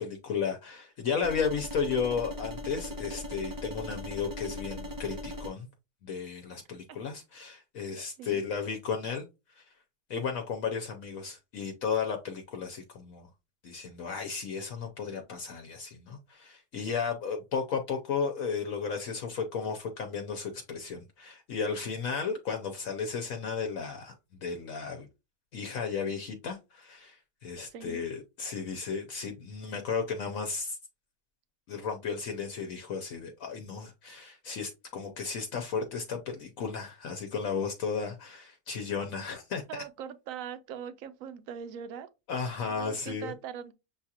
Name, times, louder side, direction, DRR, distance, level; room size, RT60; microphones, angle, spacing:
voice 1, 0.0-5.7 6.0-9.3 9.5-9.6 10.1-13.3 13.6-25.1 25.5-30.8 31.7-39.6 42.3-43.3, left 5 dB, 70° left, 1.1 m, -34 dB
sound 1, 1.2-5.5, left 1 dB, 25° right, 0.4 m, -39 dB
voice 2, 27.7-28.1 39.7-42.1 42.7-43.7, right 8 dB, 70° right, 1.0 m, -41 dB
7.0 x 2.4 x 2.8 m
omnidirectional pair, 1.6 m